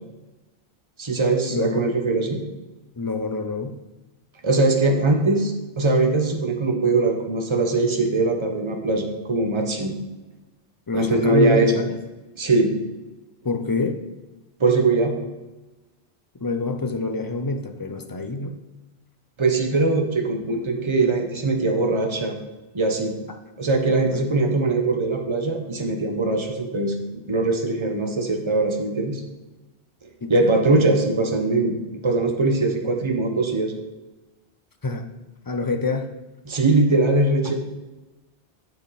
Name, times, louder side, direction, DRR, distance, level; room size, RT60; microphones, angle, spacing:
voice 1, 1.0-2.4 4.4-9.9 10.9-11.7 12.4-12.7 14.6-15.2 19.4-22.4 22.7-23.1 23.6-29.2 30.3-33.7 36.5-37.5, right 3 dB, 30° right, 3 dB, 1.0 m, -21 dB
voice 2, 1.5-1.8 3.0-3.8 10.9-11.9 13.4-14.0 16.4-18.6 24.3-24.4 30.2-30.3 34.8-35.1 35.5-36.1 37.4-37.5, left 3 dB, 30° left, 6 dB, 0.4 m, -26 dB
7.6 x 7.0 x 4.1 m, 1.1 s
omnidirectional pair, 1.1 m